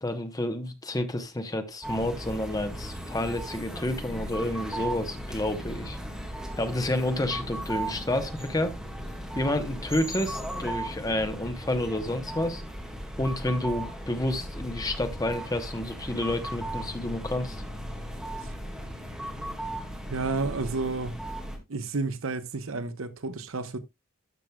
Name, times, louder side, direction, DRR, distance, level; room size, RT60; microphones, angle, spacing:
voice 1, 0.0-6.0 6.6-8.7 9.4-12.6 13.2-17.6, left 1 dB, 20° left, 0.9 m, -29 dB
sound 1, 1.8-21.6, right 1 dB, 5° right, 1.8 m, -37 dB
voice 2, 20.1-21.2 21.7-23.8, right 3 dB, 70° right, 0.8 m, -31 dB
12.5 x 6.1 x 2.3 m
head